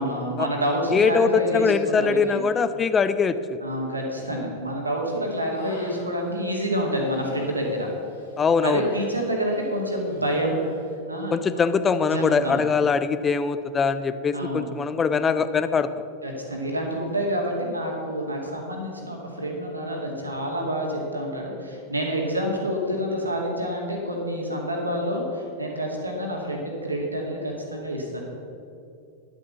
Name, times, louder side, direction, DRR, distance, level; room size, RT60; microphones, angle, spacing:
voice 1, 0.0-2.4 3.6-7.9 8.6-10.6 11.1-11.6 12.1-12.6 14.3-14.7 16.2-28.2, equal, 80° right, 0 dB, 2.3 m, -28 dB
voice 2, 0.9-3.6 8.4-8.8 11.3-15.9, left 5 dB, 20° left, 12 dB, 0.6 m, -22 dB
Human voice, 5.2-6.3 6.7-9.7 9.9-10.8, left 1 dB, 75° left, 3.1 m, -42 dB
11.0 x 8.1 x 6.8 m, 2.6 s
figure-of-eight pair, 90°, 0 cm